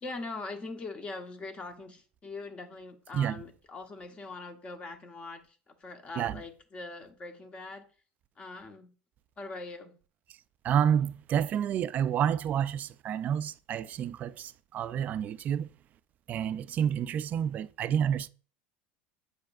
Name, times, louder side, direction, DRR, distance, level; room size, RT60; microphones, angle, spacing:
voice 1, 0.0-7.9 8.4-8.9 9.4-9.9, left 3 dB, 25° left, 1.0 m, -42 dB
voice 2, 10.6-15.7 16.3-18.3, right 9 dB, 40° right, 0.3 m, -29 dB
7.9 x 5.1 x 2.6 m
supercardioid pair, 125°, 4 cm